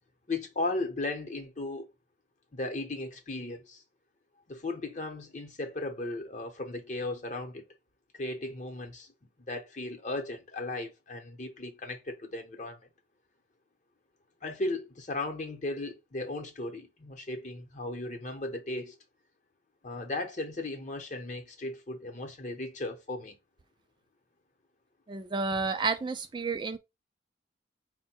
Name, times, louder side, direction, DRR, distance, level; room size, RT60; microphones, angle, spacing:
voice 1, 0.3-1.9 2.5-3.8 4.5-7.6 8.1-9.1 9.5-12.8 14.4-19.0 19.8-23.3, left 2 dB, 40° left, 0.8 m, -36 dB
voice 2, 25.1-26.8, right 4 dB, 25° right, 0.3 m, -31 dB
4.4 x 2.2 x 4.3 m
head